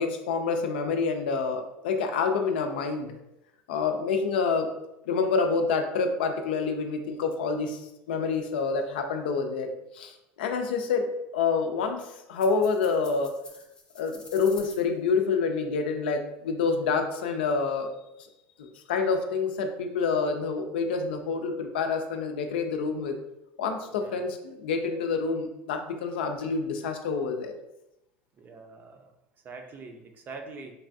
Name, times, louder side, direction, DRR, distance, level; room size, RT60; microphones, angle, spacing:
voice 1, 0.0-3.1 3.7-4.7 5.1-7.8 8.1-13.3 14.0-17.9 18.6-23.2 23.6-27.5, left 5 dB, 90° left, 5 dB, 0.4 m, -27 dB
sound 1, 12.3-14.8, left 3 dB, 20° left, 0.6 m, -49 dB
voice 2, 23.9-24.2 28.4-29.1 29.4-30.7, right 3 dB, 35° right, 4 dB, 0.5 m, -44 dB
3.2 x 2.3 x 2.5 m, 0.88 s
supercardioid pair, 100°, 5 cm